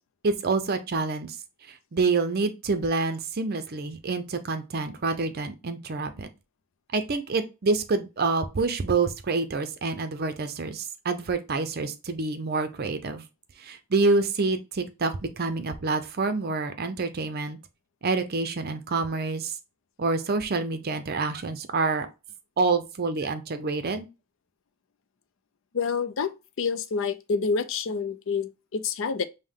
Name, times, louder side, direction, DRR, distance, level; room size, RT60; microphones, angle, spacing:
voice 1, 0.2-1.4 1.9-6.3 6.9-13.2 13.6-17.6 18.0-19.5 20.0-22.1 22.6-24.1, right 3 dB, 45° right, 0.6 m, -27 dB
voice 2, 25.7-29.3, left 5 dB, 65° left, 0.5 m, -28 dB
5.3 x 2.2 x 3.6 m
head